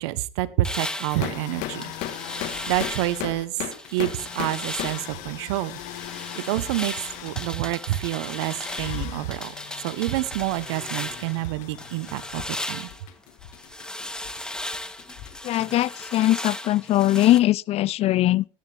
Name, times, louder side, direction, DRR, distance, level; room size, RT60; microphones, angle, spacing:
voice 1, 0.0-1.9 2.7-3.6 3.9-5.8 6.4-9.5 9.8-12.9, right 16 dB, 75° right, 0.9 m, -28 dB
sound 1, 0.6-3.3 3.7-5.2 5.5-11.4 11.8-17.4, left 1 dB, 5° left, 1.3 m, -36 dB
sound 2, 1.1-16.2, left 12 dB, 65° left, 1.4 m, -37 dB
voice 2, 15.4-18.4, left 15 dB, 45° left, 0.5 m, -21 dB
13.5 x 10.5 x 3.3 m
hypercardioid pair, 80°, 14 cm